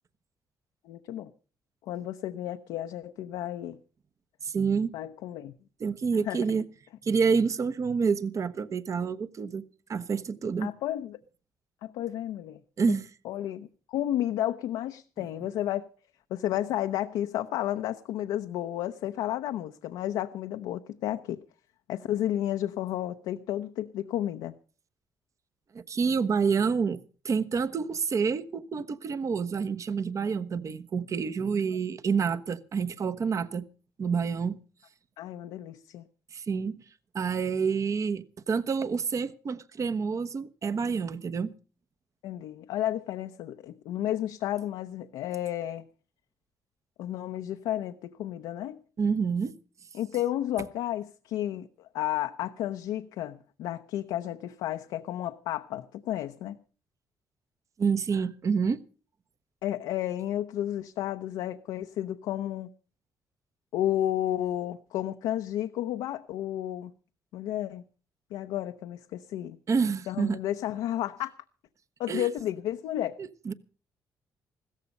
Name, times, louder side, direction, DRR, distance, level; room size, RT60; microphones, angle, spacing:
voice 1, 0.8-1.3 1.8-3.8 4.9-5.5 6.3-6.4 10.6-11.2 11.8-12.6 12.9-13.0 13.2-15.9 16.3-21.4 21.9-24.5 35.2-36.0 42.2-45.9 47.0-48.8 49.9-56.6 59.6-62.7 63.7-66.9 67.3-67.8 68.3-69.6 70.1-71.3 72.0-73.2, left 12 dB, 90° left, 0.8 m, -32 dB
voice 2, 4.4-4.9 5.8-6.6 7.0-9.6 9.9-10.7 12.8-13.1 25.7-27.0 27.2-33.6 34.0-34.6 36.3-36.8 37.1-41.5 49.0-49.6 57.8-58.8 69.7-70.4 72.1-72.3 73.2-73.5, right 5 dB, 50° right, 1.2 m, -28 dB
16.0 x 14.0 x 5.3 m
cardioid pair, 80°, 7 cm